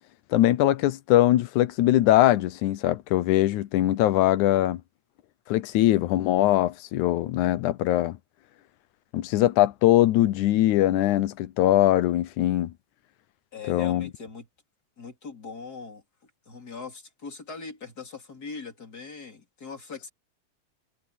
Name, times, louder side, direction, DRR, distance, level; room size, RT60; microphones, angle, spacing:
voice 1, 0.3-4.8 5.5-8.2 9.1-12.7 13.7-14.1, left 14 dB, 80° left, 2.2 m, -21 dB
voice 2, 13.5-14.5 15.0-20.1, left 5 dB, 30° left, 3.6 m, -41 dB
omnidirectional pair, 3.4 m